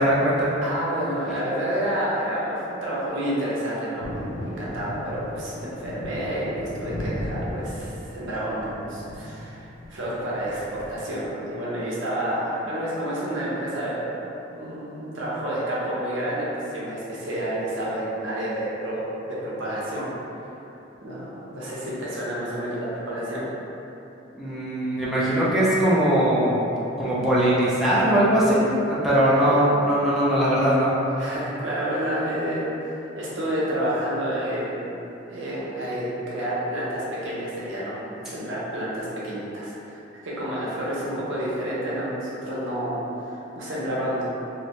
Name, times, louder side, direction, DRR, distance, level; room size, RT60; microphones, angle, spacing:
voice 1, 0.0-0.5 24.3-26.6 27.0-30.9, right 1 dB, ahead, -10 dB, 0.4 m, -20 dB
voice 2, 0.6-14.2 14.5-20.1 21.0-23.5 29.4-29.5 31.2-32.7 32.9-34.9 35.3-44.2, right 1 dB, 75° right, -7 dB, 0.6 m, -29 dB
Thunder, 4.0-11.0, left 1 dB, 80° left, 0.4 m, -36 dB
2.5 x 2.1 x 2.9 m, 2.9 s
head